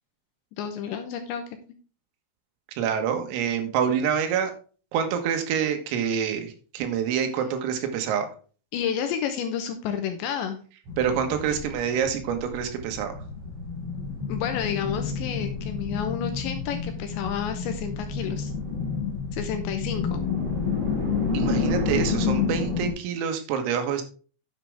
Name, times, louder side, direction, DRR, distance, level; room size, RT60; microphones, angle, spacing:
voice 1, 0.6-1.4 8.7-10.6 11.5-11.6 14.3-18.5 19.3-20.2, left 8 dB, 80° left, 7 dB, 2.7 m, -30 dB
voice 2, 2.8-4.5 4.9-8.3 11.0-13.1 21.3-24.0, right 8 dB, 90° right, 6 dB, 4.2 m, -26 dB
sound 1, 10.9-22.9, left 5 dB, 65° right, 5.1 m, -29 dB
9.8 x 7.6 x 3.5 m, 0.38 s
omnidirectional pair, 5.9 m